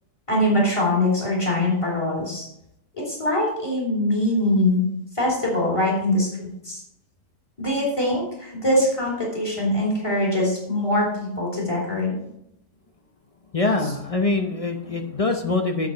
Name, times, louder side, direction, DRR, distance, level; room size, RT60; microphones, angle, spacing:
voice 1, 0.3-2.5 3.0-4.8 5.1-6.8 7.6-12.2 13.8-13.9, left 1 dB, 15° left, -4 dB, 3.1 m, -23 dB
voice 2, 13.5-15.9, left 3 dB, 40° left, 4 dB, 0.5 m, -24 dB
8.5 x 7.5 x 4.5 m, 0.78 s
omnidirectional pair, 1.8 m